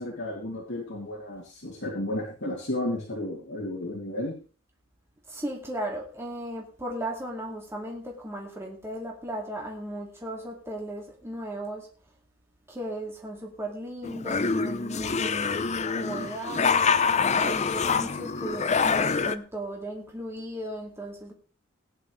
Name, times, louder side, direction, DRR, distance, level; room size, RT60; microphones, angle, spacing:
voice 1, 0.0-4.3, left 1 dB, 60° left, 2.8 m, -33 dB
voice 2, 5.3-11.9 12.7-15.5 15.9-16.9 17.4-21.3, right 1 dB, 10° right, 2.4 m, -36 dB
sound 1, 14.0-19.3, left 5 dB, 35° left, 0.6 m, -25 dB
18.5 x 9.8 x 3.3 m
head